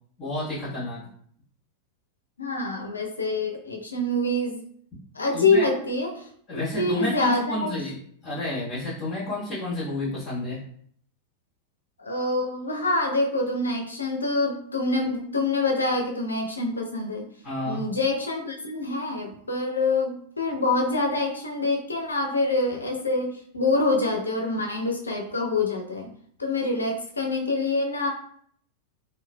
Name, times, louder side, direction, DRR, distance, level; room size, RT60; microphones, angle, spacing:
voice 1, 0.2-1.1 5.3-5.6 6.5-8.0 8.2-10.6 17.4-17.8, left 1 dB, 25° left, -10 dB, 1.3 m, -30 dB
voice 2, 2.4-4.6 5.1-7.7 12.0-17.3 17.6-26.1 26.4-28.1, left 2 dB, 75° left, 2 dB, 0.5 m, -26 dB
3.0 x 2.4 x 2.2 m, 0.62 s
figure-of-eight pair, 90°, 0 cm